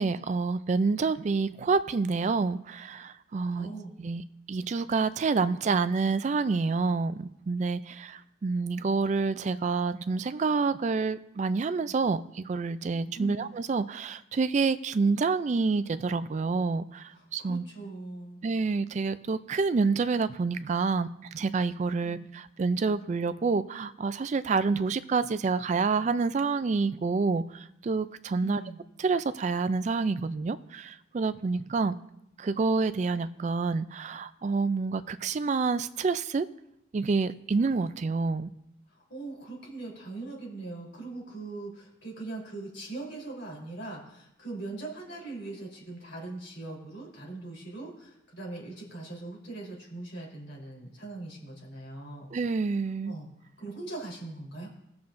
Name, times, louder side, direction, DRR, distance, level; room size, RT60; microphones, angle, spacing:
voice 1, 0.0-3.7 4.0-17.6 18.4-28.6 29.0-31.9 32.4-36.5 36.9-38.5 52.3-53.1, right 4 dB, 35° right, 14 dB, 0.3 m, -28 dB
voice 2, 3.6-4.0 13.1-13.5 17.2-18.5 22.0-22.2 28.4-28.8 39.1-52.3 53.1-53.3 53.6-54.7, right 2 dB, 65° left, -3 dB, 3.6 m, -41 dB
19.5 x 7.0 x 2.6 m, 0.81 s
head